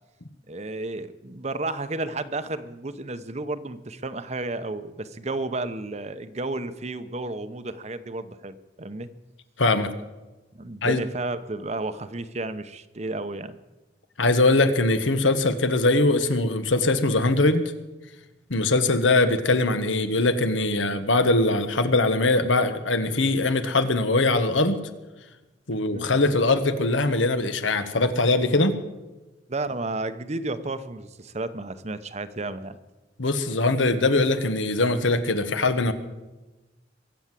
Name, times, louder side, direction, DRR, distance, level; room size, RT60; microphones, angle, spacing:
voice 1, 0.5-9.1 10.5-13.6 25.9-26.1 29.5-32.8, right 2 dB, 35° right, 12 dB, 0.8 m, -32 dB
voice 2, 9.6-9.9 10.8-11.0 14.2-17.7 18.5-24.8 25.7-28.7 33.2-35.9, left 2 dB, 90° left, 9 dB, 1.4 m, -22 dB
23.0 x 8.0 x 7.5 m, 1.1 s
head